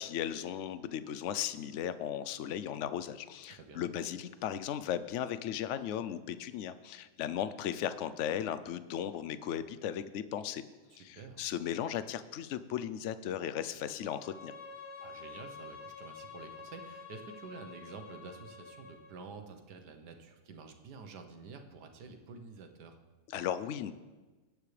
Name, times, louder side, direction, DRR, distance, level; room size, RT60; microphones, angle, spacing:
voice 1, 0.0-10.6 11.0-14.5 23.3-23.9, left 10 dB, 65° left, 13 dB, 0.7 m, -36 dB
voice 2, 3.5-3.8 10.9-11.5 15.0-23.0, right 4 dB, 85° right, 5 dB, 1.6 m, -49 dB
Bowed string instrument, 14.0-19.2, left 5 dB, 50° left, 1.1 m, -49 dB
19.0 x 8.4 x 3.3 m, 1.2 s
omnidirectional pair, 1.7 m